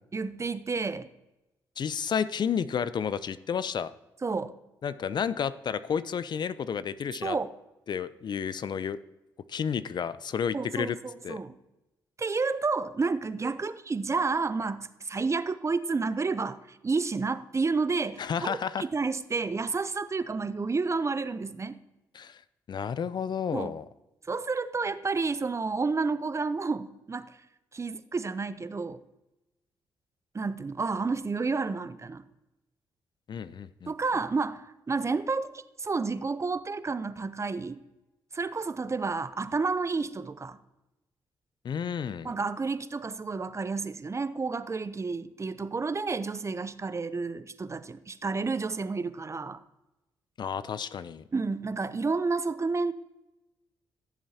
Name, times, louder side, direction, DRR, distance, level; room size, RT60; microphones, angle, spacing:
voice 1, 0.1-1.1 4.2-4.6 7.2-7.5 10.5-10.9 11.3-11.5 12.2-18.5 18.9-21.8 23.5-23.7 24.3-27.3 27.7-29.0 30.3-32.2 33.9-37.8 38.3-40.6 42.2-49.6 51.3-52.9, right 4 dB, 30° right, 13 dB, 0.6 m, -30 dB
voice 2, 1.8-3.9 4.8-7.4 7.9-9.0 9.5-11.0 11.2-11.4 18.2-18.9 22.1-22.4 22.7-23.9 33.3-33.9 41.6-42.4 50.4-51.2, left 7 dB, 50° left, 16 dB, 0.4 m, -31 dB
15.0 x 7.4 x 2.8 m, 0.98 s
hypercardioid pair, 50°, 9 cm